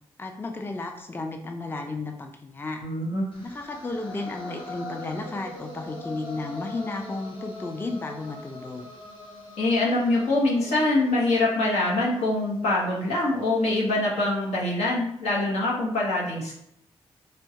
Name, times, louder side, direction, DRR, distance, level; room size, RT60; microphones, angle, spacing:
voice 1, 0.2-2.8 3.4-8.9, left 2 dB, 20° left, 4 dB, 0.4 m, -33 dB
voice 2, 2.8-3.3 9.6-16.6, left 2 dB, 85° left, -4 dB, 0.9 m, -24 dB
sound 1, 3.3-13.4, left 2 dB, 50° left, 0.9 m, -42 dB
3.0 x 2.2 x 2.7 m, 0.75 s
cardioid pair, 60°, 11 cm